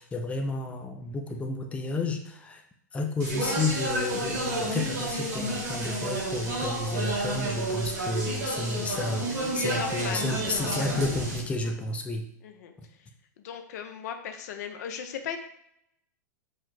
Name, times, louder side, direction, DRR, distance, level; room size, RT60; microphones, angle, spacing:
voice 1, 0.0-2.6 2.9-12.2, left 2 dB, 15° left, 3 dB, 0.5 m, -31 dB
Speech, 3.2-11.4, right 1 dB, 65° right, 1.6 m, -31 dB
voice 2, 9.6-10.9 12.4-12.7 13.4-15.4, left 8 dB, 65° left, 6 dB, 0.5 m, -37 dB
4.7 x 2.0 x 4.0 m, 0.75 s
hypercardioid pair, 110°, 10 cm